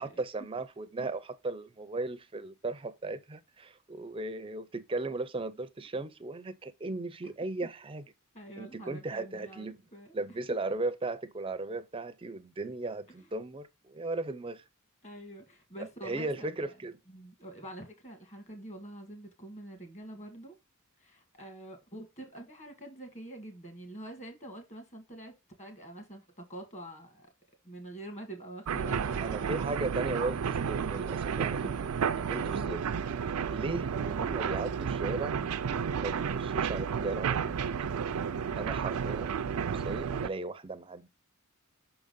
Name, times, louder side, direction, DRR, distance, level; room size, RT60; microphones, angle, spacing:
voice 1, 0.0-8.0 8.6-9.8 10.1-14.6 15.8-17.0 29.2-32.9 33.5-35.4 36.0-37.6 38.3-39.3 39.7-41.1, right 2 dB, 25° right, 0.5 m, -37 dB
voice 2, 8.3-10.1 13.2-13.3 15.0-16.8 17.1-20.6 21.0-27.3 27.6-29.7, right 1 dB, 30° left, 1.8 m, -46 dB
sound 1, 28.7-40.3, right 7 dB, 75° right, 0.4 m, -32 dB
6.0 x 3.8 x 5.2 m
head